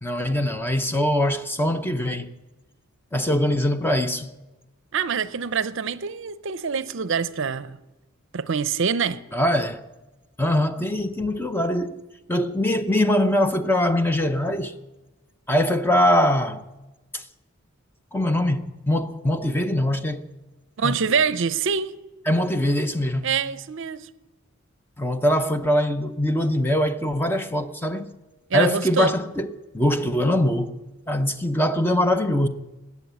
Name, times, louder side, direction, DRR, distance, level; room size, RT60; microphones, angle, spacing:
voice 1, 0.0-2.3 3.1-4.3 9.3-9.8 10.4-12.0 12.3-14.8 15.5-16.6 17.1-17.2 18.1-20.3 20.8-21.0 22.3-23.3 25.0-28.1 28.5-30.8 31.1-32.5, left 1 dB, 10° left, 0.6 m, -22 dB
voice 2, 4.9-7.8 8.3-9.2 20.8-21.9 23.2-24.1 28.5-29.1, right 6 dB, 55° right, 0.5 m, -25 dB
20.0 x 8.2 x 8.2 m
head